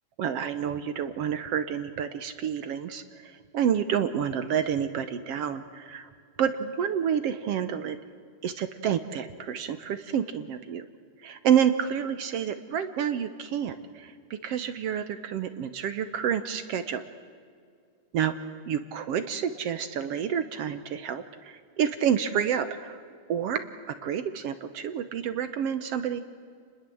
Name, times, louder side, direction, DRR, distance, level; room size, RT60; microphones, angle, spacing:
voice 1, 0.2-6.1 6.4-8.0 8.4-10.9 11.2-17.0 18.1-18.3 18.7-23.0 23.3-26.2, right 8 dB, 65° right, 11 dB, 1.7 m, -29 dB
29.5 x 21.0 x 7.8 m, 2.2 s
omnidirectional pair, 3.5 m